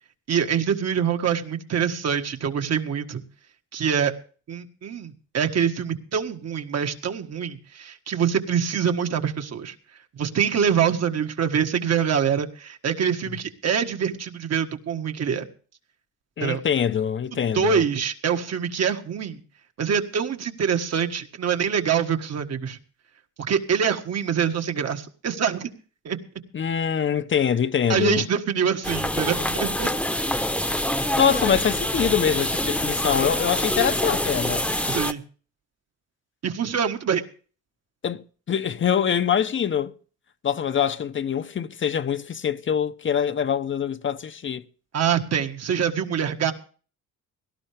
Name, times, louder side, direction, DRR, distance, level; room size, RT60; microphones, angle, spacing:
voice 1, 0.3-3.2 3.7-4.1 4.5-9.7 10.1-15.5 16.4-16.6 17.3-19.4 19.8-22.8 23.5-25.7 26.0-26.2 27.9-29.9 34.9-35.2 36.4-37.2 44.9-46.5, right 7 dB, 60° right, 1.7 m, -25 dB
voice 2, 16.4-17.8 26.5-28.3 31.2-34.6 38.0-39.9 40.4-44.7, left 8 dB, 40° left, 0.8 m, -24 dB
sound 1, 28.8-35.1, left 1 dB, 5° left, 1.0 m, -25 dB
17.5 x 12.5 x 3.4 m
cardioid pair, 90°, 30 cm